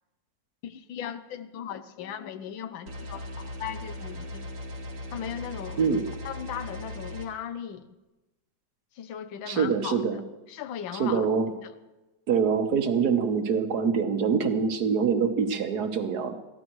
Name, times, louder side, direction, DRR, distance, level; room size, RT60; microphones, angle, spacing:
voice 1, 0.6-4.5 5.1-6.0 6.2-8.0 8.9-10.0 10.5-11.3 11.6-11.7, left 9 dB, 90° left, 11 dB, 1.6 m, -37 dB
sound 1, 2.9-7.3, left 1 dB, 90° right, 2.4 m, -38 dB
voice 2, 9.5-10.2 11.0-11.5 12.3-16.3, right 6 dB, 60° right, 7 dB, 1.6 m, -25 dB
21.5 x 15.0 x 3.1 m, 1.1 s
omnidirectional pair, 2.0 m